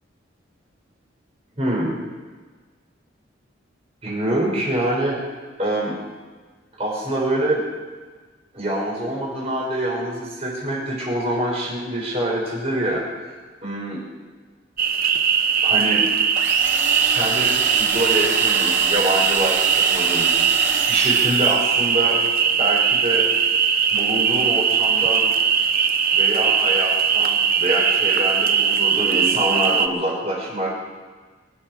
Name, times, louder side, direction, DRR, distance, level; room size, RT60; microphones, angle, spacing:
voice 1, 1.6-2.0 4.0-5.2 5.6-6.0 6.8-7.6 8.5-13.3 13.6-14.0 15.6-16.0 17.1-20.3 20.9-22.2 22.5-23.3 23.9-25.3 26.1-30.7, right 1 dB, 35° right, -4 dB, 6.6 m, -25 dB
sound 1, 14.8-29.9, right 6 dB, 50° right, 0.8 m, -20 dB
sound 2, 16.3-22.0, right 5 dB, 80° right, 2.1 m, -28 dB
23.5 x 8.9 x 6.3 m, 1.4 s
head